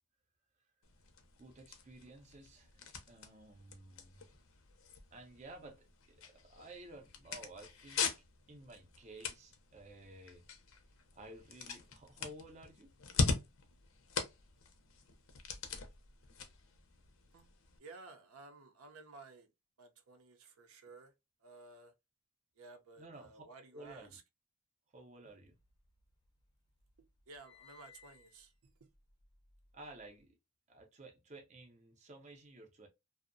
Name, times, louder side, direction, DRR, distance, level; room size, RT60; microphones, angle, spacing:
sound 1, 0.8-17.8, left 4 dB, 70° left, 0.5 m, -42 dB
voice 1, 1.4-4.2 5.1-10.5 11.1-12.9 23.0-23.4 23.7-24.2 24.9-25.6 29.7-30.4 30.7-32.9, right 2 dB, 35° right, 0.5 m, -54 dB
voice 2, 17.8-19.5 19.8-21.1 21.4-21.9 22.6-24.2 27.3-28.7, right 3 dB, 85° right, 0.6 m, -55 dB
sound 2, 25.4-26.5 26.8-30.2, left 6 dB, 20° left, 0.4 m, -64 dB
2.6 x 2.0 x 2.5 m
head